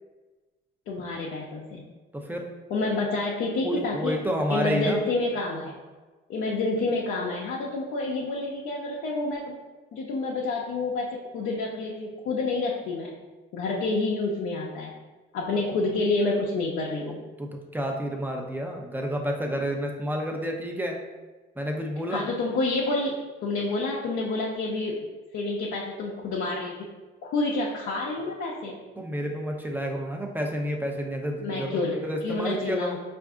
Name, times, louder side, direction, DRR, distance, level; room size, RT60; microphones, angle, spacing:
voice 1, 0.9-1.8 2.7-4.2 4.5-5.7 6.3-9.5 9.9-13.1 13.5-14.9 15.3-17.2 22.1-23.1 23.4-25.0 25.3-26.9 27.2-28.8 31.4-33.0, left 3 dB, 80° left, -4 dB, 0.7 m, -28 dB
voice 2, 2.1-2.5 3.6-5.0 17.4-21.0 21.6-22.2 28.2-28.3 29.0-33.0, equal, 10° right, 2 dB, 0.7 m, -30 dB
4.6 x 2.5 x 3.5 m, 1.2 s
cardioid pair, 90°, 20 cm